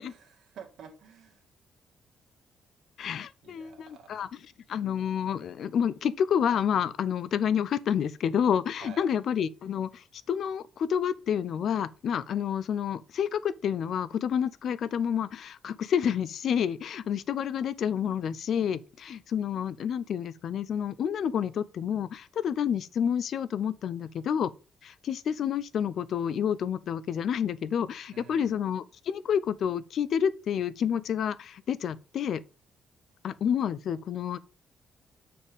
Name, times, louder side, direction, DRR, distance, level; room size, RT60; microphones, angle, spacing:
voice 1, 0.1-1.4 3.4-4.2 8.8-9.1 28.1-28.6, right 6 dB, 65° right, 1.7 m, -49 dB
voice 2, 3.0-4.3 4.7-24.5 24.8-32.4 33.2-34.4, left 8 dB, 55° left, 0.4 m, -29 dB
7.2 x 4.2 x 5.1 m
cardioid pair, 165°, 0 cm